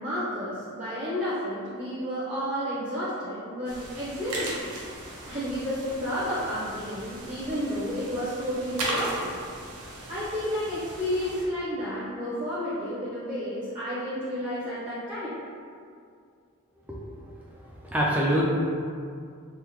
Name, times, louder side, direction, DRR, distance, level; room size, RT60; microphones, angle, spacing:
voice 1, 0.0-4.6 5.0-9.3 10.1-15.3, equal, 35° right, -11 dB, 0.8 m, -31 dB
sound 1, 3.7-11.4, right 2 dB, 85° right, 0.6 m, -37 dB
voice 2, 16.9-17.2 17.5-18.4, equal, 5° right, -4 dB, 0.3 m, -27 dB
3.5 x 2.1 x 3.0 m, 2.3 s
head